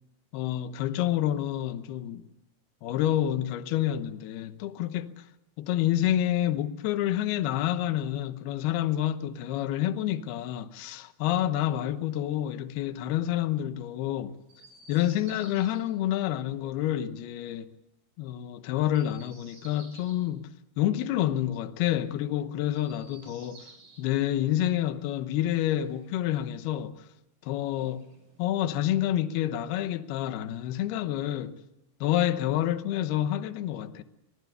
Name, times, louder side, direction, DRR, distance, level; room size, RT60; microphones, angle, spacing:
voice 1, 0.3-2.3 2.8-5.2 5.6-14.3 14.9-17.7 18.2-23.7 24.0-27.1 27.4-28.1 28.4-31.6 32.0-34.0, left 12 dB, 75° left, 2.9 m, -28 dB
Chirp tweet, 14.4-15.8 18.8-20.2 22.6-24.1 25.5-26.6 27.7-28.6, right 2 dB, 45° right, 7.3 m, -54 dB
25.5 x 19.5 x 6.9 m
omnidirectional pair, 4.9 m